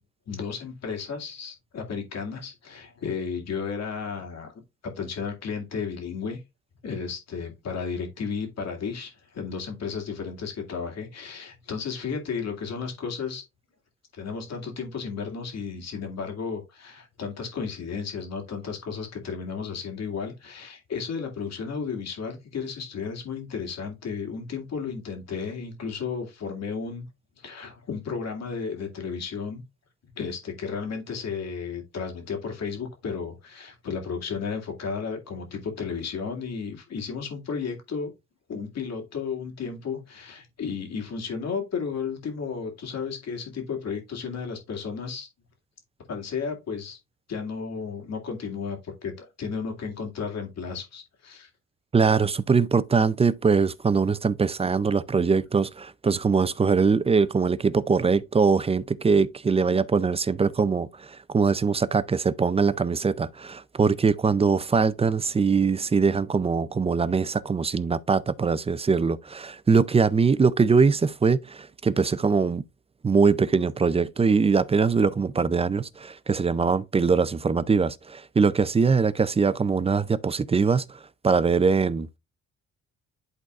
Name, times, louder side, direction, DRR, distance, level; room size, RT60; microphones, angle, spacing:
voice 1, 0.3-4.5 4.8-6.4 6.8-13.4 14.2-27.1 27.4-29.6 30.2-38.1 38.5-45.3 46.1-47.0 47.3-51.5, left 5 dB, 60° left, 2.2 m, -33 dB
voice 2, 51.9-72.6 73.0-82.2, right 5 dB, 20° right, 0.4 m, -22 dB
11.0 x 3.9 x 2.4 m
cardioid pair, 90°, 30 cm